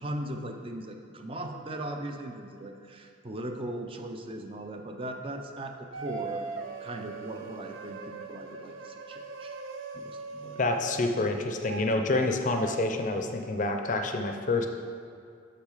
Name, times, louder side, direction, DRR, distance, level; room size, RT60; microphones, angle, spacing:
voice 1, 0.0-6.5 6.8-9.5 9.9-10.7, right 1 dB, 25° right, 4 dB, 0.4 m, -38 dB
sound 1, 5.9-11.0 11.6-12.3 12.6-12.8, right 4 dB, 75° right, 0.6 m, -40 dB
voice 2, 10.6-14.7, left 2 dB, 40° left, 5 dB, 0.5 m, -28 dB
6.6 x 6.2 x 4.9 m, 2.3 s
head